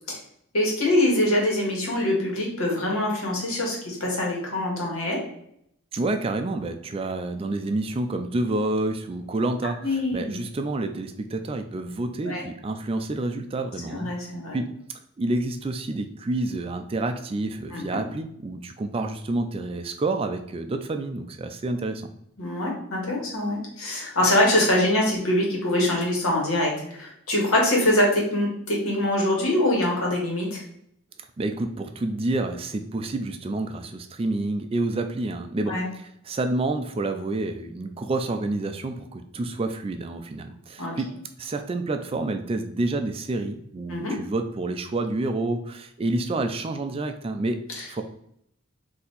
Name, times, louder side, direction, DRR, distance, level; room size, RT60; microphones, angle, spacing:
voice 1, 0.5-5.2 9.8-10.4 12.2-12.4 13.9-14.6 17.7-17.8 22.4-30.6 35.7-35.8 40.8-40.9 43.9-44.1 47.8-47.9, left 1 dB, 85° left, -1 dB, 1.6 m, -24 dB
voice 2, 5.9-14.1 14.5-14.7 15.2-22.1 31.4-41.1 41.4-47.6 47.9-48.0, right 2 dB, 25° right, 7 dB, 0.3 m, -28 dB
4.2 x 2.8 x 4.0 m, 0.72 s
head